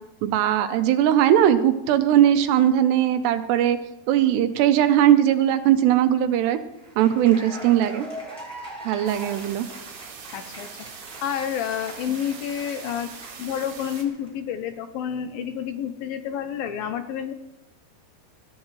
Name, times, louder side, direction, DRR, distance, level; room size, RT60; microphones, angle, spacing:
voice 1, 0.2-3.8 4.1-6.6 7.0-8.1 8.9-9.7, right 11 dB, 85° right, 9 dB, 3.1 m, -19 dB
Cheering / Applause, 6.7-14.3, right 1 dB, ahead, 6.9 m, -41 dB
sound 1, 9.1-14.0, right 6 dB, 65° right, 3.5 m, -42 dB
voice 2, 10.3-10.7 11.2-13.1 13.4-17.3, left 9 dB, 75° left, 8 dB, 2.2 m, -29 dB
20.5 x 14.0 x 3.2 m, 0.91 s
omnidirectional pair, 4.8 m